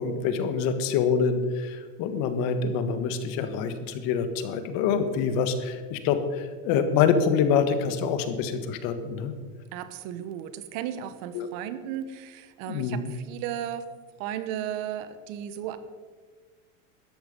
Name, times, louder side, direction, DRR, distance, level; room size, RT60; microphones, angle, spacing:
voice 1, 0.0-9.3 11.3-11.5 12.7-13.1, left 6 dB, 60° left, 9 dB, 1.6 m, -26 dB
voice 2, 9.7-13.9 14.2-15.8, right 10 dB, 60° right, 12 dB, 1.2 m, -35 dB
13.5 x 10.5 x 5.4 m, 1.5 s
supercardioid pair, 115°, 39 cm